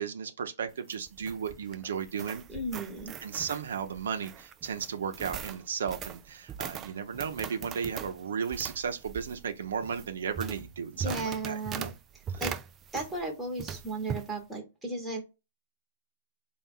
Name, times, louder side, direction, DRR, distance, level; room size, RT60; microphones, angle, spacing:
voice 1, 0.0-2.4 3.2-11.9 12.3-12.4, right 7 dB, 80° right, 0.6 m, -35 dB
sound 1, 0.7-13.3 13.6-14.3, right 8 dB, 20° right, 0.3 m, -41 dB
voice 2, 2.5-3.1 11.0-11.9 12.4-12.5 12.9-15.2, right 2 dB, 5° right, 1.1 m, -35 dB
4.3 x 2.3 x 3.6 m
hypercardioid pair, 155°, 0 cm